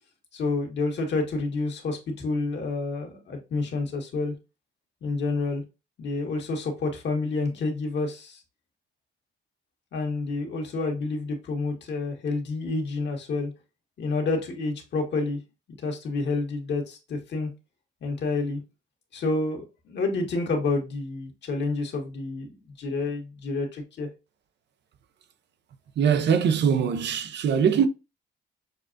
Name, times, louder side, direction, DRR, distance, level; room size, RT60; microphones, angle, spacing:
voice 1, 0.3-4.3 5.0-5.6 6.0-8.4 9.9-13.5 14.0-15.4 15.8-17.5 18.0-18.6 19.1-24.1, left 3 dB, 60° left, 1.5 m, -29 dB
voice 2, 26.0-27.9, right 7 dB, 60° right, 0.6 m, -22 dB
6.5 x 2.4 x 2.5 m
cardioid pair, 90°, 20 cm